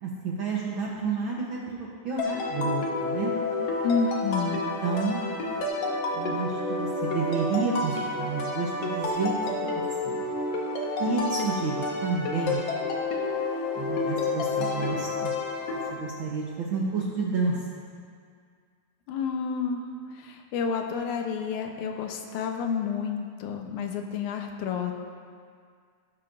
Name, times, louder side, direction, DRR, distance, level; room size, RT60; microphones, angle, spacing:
voice 1, 0.0-3.3 4.8-5.2 6.1-9.3 10.0-10.2 11.0-11.7 12.0-12.6 13.7-15.3 15.9-17.8, right 4 dB, 65° right, -4 dB, 1.3 m, -30 dB
sound 1, 2.2-15.9, left 3 dB, 60° left, 2.2 m, -29 dB
voice 2, 3.8-4.6 19.1-19.8 20.2-24.9, left 6 dB, 80° left, 3 dB, 2.3 m, -30 dB
18.0 x 9.9 x 2.6 m, 2.1 s
omnidirectional pair, 3.5 m